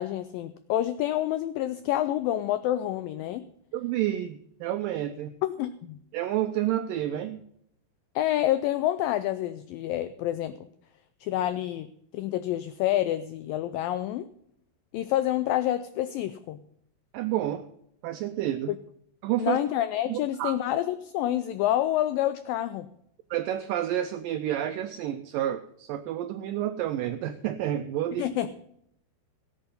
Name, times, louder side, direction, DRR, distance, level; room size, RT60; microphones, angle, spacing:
voice 1, 0.0-3.5 5.4-6.0 8.2-10.7 11.2-11.9 12.1-14.3 14.9-16.6 18.7-18.8 19.4-22.9 28.2-28.5, left 13 dB, 85° left, 12 dB, 2.0 m, -28 dB
voice 2, 3.7-5.3 6.1-7.4 17.1-17.7 18.0-18.7 19.2-19.6 20.1-20.6 23.3-28.3, right 12 dB, 85° right, 9 dB, 1.9 m, -29 dB
17.0 x 7.9 x 5.4 m, 0.71 s
omnidirectional pair, 4.6 m